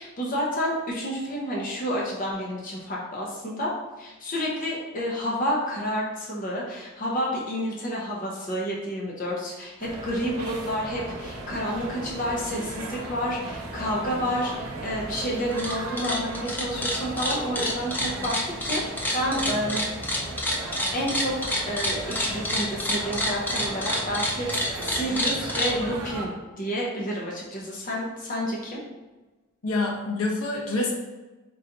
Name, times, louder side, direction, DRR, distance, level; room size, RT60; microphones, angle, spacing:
voice 1, 0.0-3.7 4.0-18.3 18.6-18.8 19.1-19.8 20.6-28.8, equal, 40° left, -4 dB, 0.7 m, -30 dB
sound 1, 9.8-26.3, right 2 dB, 80° right, 0.7 m, -36 dB
sound 2, 15.4-15.7 16.0-25.7, left 1 dB, 10° left, 0.4 m, -27 dB
voice 2, 29.6-30.9, left 2 dB, 75° left, -1 dB, 0.9 m, -26 dB
3.9 x 3.8 x 2.9 m, 1.2 s
head